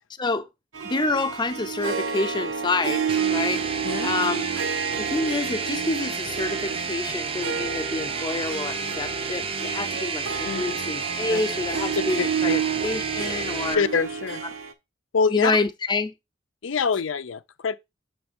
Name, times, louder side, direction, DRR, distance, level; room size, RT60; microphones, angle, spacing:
Harp, 0.7-14.7, right 6 dB, 85° right, 0.9 m, -30 dB
voice 1, 0.8-3.0 3.3-3.6 4.0-4.5 5.0-13.8 15.3-16.1, left 3 dB, 25° left, 0.6 m, -28 dB
sound 1, 3.1-13.7, right 5 dB, 30° right, 0.5 m, -31 dB
voice 2, 10.4-10.7 11.3-11.4 12.5-12.6 13.7-14.4 15.1-15.5 16.6-17.8, left 5 dB, 75° left, 0.5 m, -25 dB
7.0 x 3.4 x 5.0 m
head